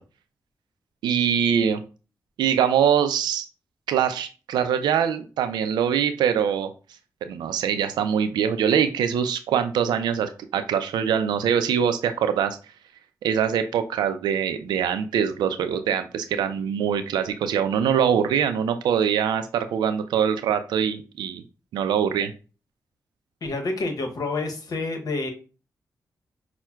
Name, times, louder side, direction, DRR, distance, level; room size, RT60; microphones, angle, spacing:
voice 1, 1.0-1.8 2.4-3.5 3.9-6.7 7.3-12.6 13.2-21.4 21.7-22.3, right 8 dB, 90° right, 10 dB, 0.4 m, -23 dB
voice 2, 23.4-25.3, left 3 dB, 60° left, 4 dB, 0.9 m, -28 dB
5.5 x 2.1 x 2.3 m, 0.34 s
supercardioid pair, 45°, 7 cm